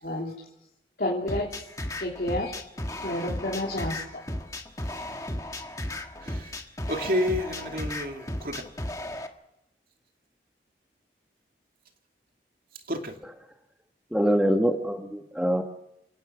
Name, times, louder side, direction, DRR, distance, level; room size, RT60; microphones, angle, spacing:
voice 1, 0.0-0.3 1.0-1.6 2.0-2.6 3.0-4.2, left 1 dB, 55° left, -4 dB, 3.1 m, -30 dB
sound 1, 1.3-9.3, left 1 dB, 20° left, 1.5 m, -35 dB
voice 2, 6.2-6.6 6.9-8.6 12.9-13.1, left 1 dB, 55° right, 4 dB, 2.6 m, -30 dB
voice 3, 14.1-15.6, equal, 5° right, 4 dB, 1.3 m, -24 dB
29.0 x 17.5 x 6.1 m, 0.86 s
head